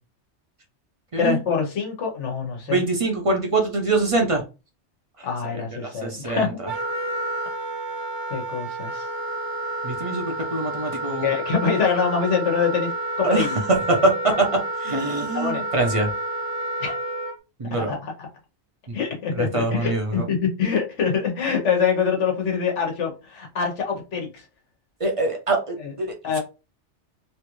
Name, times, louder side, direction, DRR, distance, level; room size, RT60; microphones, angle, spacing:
voice 1, 1.2-2.8 5.2-6.5 8.3-9.1 11.2-13.5 15.3-15.6 16.8-16.9 17.9-18.3 18.9-24.3 25.8-25.9 26.2-26.4, left 6 dB, 90° left, 1.3 m, -24 dB
voice 2, 2.7-4.4 5.2-5.3 5.8-6.7 9.8-11.3 13.2-14.5 14.8-16.1 17.6-17.9 19.3-20.2 25.0-26.4, right 3 dB, 40° right, 0.5 m, -24 dB
Wind instrument woodwind instrument, 6.7-17.3, right 1 dB, 85° right, 1.3 m, -30 dB
3.1 x 2.5 x 3.0 m
omnidirectional pair, 1.2 m